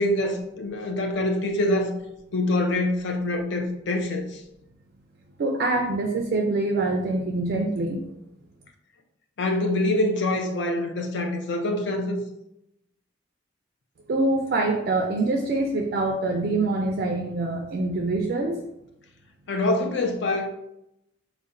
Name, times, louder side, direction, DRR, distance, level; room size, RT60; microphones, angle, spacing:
voice 1, 0.0-2.0 2.3-4.4 9.4-12.2 19.5-20.5, left 1 dB, 65° left, 4 dB, 0.5 m, -25 dB
voice 2, 5.4-8.1 14.1-18.6, right 2 dB, 55° right, 2 dB, 0.3 m, -25 dB
3.9 x 2.1 x 2.5 m, 0.84 s
head